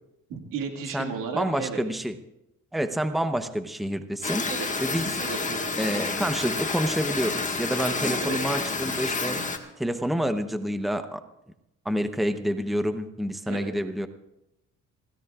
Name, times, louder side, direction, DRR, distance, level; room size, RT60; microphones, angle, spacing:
voice 1, 0.3-1.8 4.5-4.7 5.2-5.7 8.2-8.4 13.4-13.7, right 6 dB, 80° right, 3 dB, 2.3 m, -34 dB
voice 2, 0.9-2.2 2.7-4.5 4.8-5.1 5.8-9.4 9.8-11.2 11.8-14.1, equal, ahead, 8 dB, 0.9 m, -28 dB
sound 1, 4.2-9.6, left 3 dB, 25° left, 1.6 m, -29 dB
26.5 x 16.5 x 2.5 m, 0.89 s
cardioid pair, 95°, 32 cm